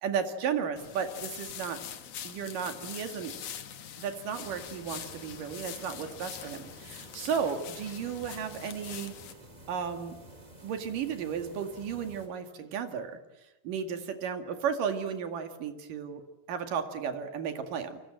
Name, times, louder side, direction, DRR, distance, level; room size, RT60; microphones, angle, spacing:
voice 1, 0.0-1.8 2.2-3.3 4.0-9.1 9.7-10.2 10.6-13.2 13.6-16.2 16.5-18.0, right 7 dB, 70° right, 7 dB, 3.6 m, -34 dB
sound 1, 0.8-9.3, left 9 dB, 55° left, 2.2 m, -44 dB
sound 2, 4.4-12.3, right 1 dB, 10° right, 3.7 m, -51 dB
28.0 x 24.5 x 7.8 m, 1.0 s
omnidirectional pair, 4.1 m